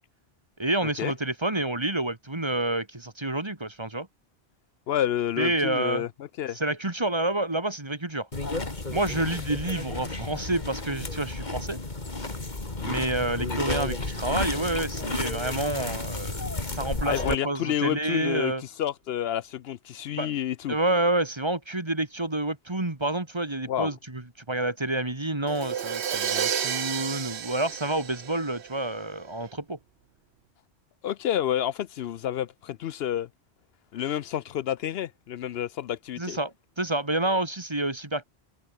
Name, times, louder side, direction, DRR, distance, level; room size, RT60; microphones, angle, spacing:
voice 1, 0.6-4.1 5.4-6.1 6.5-8.3 8.9-11.8 12.8-18.6 20.2-20.3 20.7-24.2 24.5-29.8 36.2-38.2, right 2 dB, 25° right, 2.0 m, -28 dB
voice 2, 4.9-6.1 6.4-6.6 12.8-13.0 17.1-20.8 23.7-23.9 31.0-33.3 33.9-36.4, left 11 dB, 75° left, 0.8 m, -29 dB
sound 1, 8.3-17.4, left 2 dB, 45° left, 2.6 m, -32 dB
Crash cymbal, 25.5-29.2, right 8 dB, 80° right, 1.2 m, -31 dB
omnidirectional pair, 1.1 m